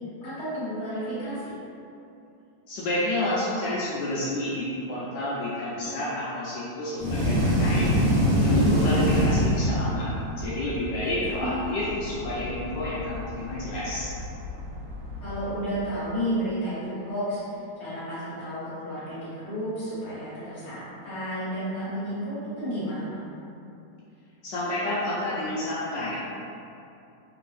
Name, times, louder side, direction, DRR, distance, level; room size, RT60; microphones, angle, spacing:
voice 1, 0.2-1.5 11.1-11.6 15.2-23.2, equal, 40° left, -13 dB, 1.7 m, -32 dB
voice 2, 2.7-7.9 8.4-14.1 24.4-26.3, left 1 dB, 80° left, -7 dB, 1.2 m, -29 dB
sound 1, 7.0-10.1, equal, 40° right, 1.0 m, -22 dB
sound 2, 9.7-15.9, left 2 dB, 80° right, 0.7 m, -39 dB
3.4 x 2.6 x 3.2 m, 2.7 s
omnidirectional pair, 2.0 m